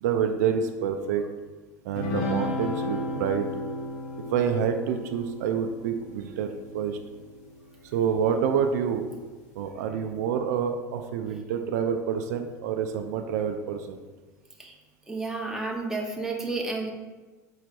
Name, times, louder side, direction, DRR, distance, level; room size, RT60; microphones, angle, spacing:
voice 1, 0.0-1.2 1.8-3.5 4.3-6.5 6.7-7.0 7.9-9.0 9.6-14.0, right 7 dB, 70° right, 6 dB, 0.4 m, -27 dB
sound 1, 2.0-7.6, left 2 dB, 65° left, 0.7 m, -34 dB
voice 2, 15.1-16.9, right 3 dB, 5° right, -1 dB, 0.8 m, -31 dB
4.7 x 4.5 x 2.4 m, 1.3 s
hypercardioid pair, 80°, 9 cm